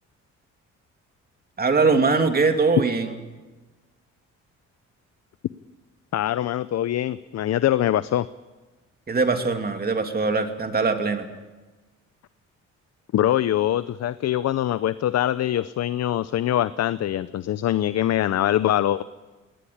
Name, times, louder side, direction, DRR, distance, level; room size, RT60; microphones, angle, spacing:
voice 1, 1.6-3.2 9.1-11.3, right 4 dB, 30° right, 6 dB, 2.8 m, -21 dB
voice 2, 6.1-8.3 13.1-19.0, left 12 dB, 60° left, 15 dB, 0.7 m, -23 dB
21.0 x 18.0 x 8.7 m, 1.2 s
cardioid pair, 90°, 30 cm